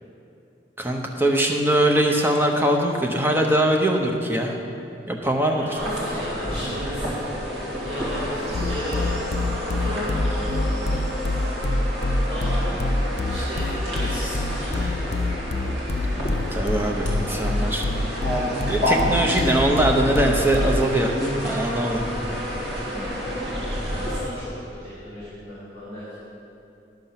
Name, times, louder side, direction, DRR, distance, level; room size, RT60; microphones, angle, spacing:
voice 1, 0.8-4.5 5.1-5.8 16.5-17.9 18.6-21.2 21.4-22.0 22.9-23.1, right 1 dB, 10° right, 1 dB, 0.7 m, -22 dB
voice 2, 5.5-7.2 7.8-9.4 9.8-10.9 12.3-12.7 13.3-15.4 21.9-23.7 24.0-26.1, equal, 55° right, -11 dB, 2.6 m, -36 dB
sound 1, 5.8-24.2, equal, 70° right, 2.1 m, -29 dB
sound 2, 8.5-20.9, left 2 dB, 35° left, 0.4 m, -26 dB
10.5 x 6.8 x 5.8 m, 2.7 s
head